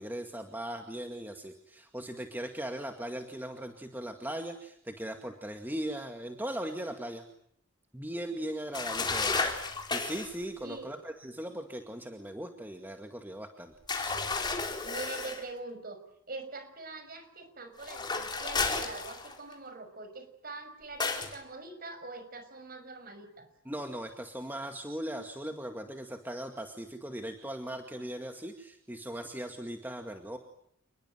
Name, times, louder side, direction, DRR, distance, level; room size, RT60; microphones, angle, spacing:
voice 1, 0.0-7.2 7.9-9.4 9.9-14.2 23.7-30.4, right 1 dB, 10° right, 4 dB, 2.1 m, -39 dB
sound 1, 8.7-10.4 13.9-15.4 17.8-19.5 21.0-21.4, left 4 dB, 20° left, 4.2 m, -32 dB
voice 2, 10.6-10.9 14.6-16.0 16.3-23.5, right 3 dB, 45° right, 9 dB, 6.0 m, -44 dB
29.0 x 21.5 x 9.3 m, 0.67 s
head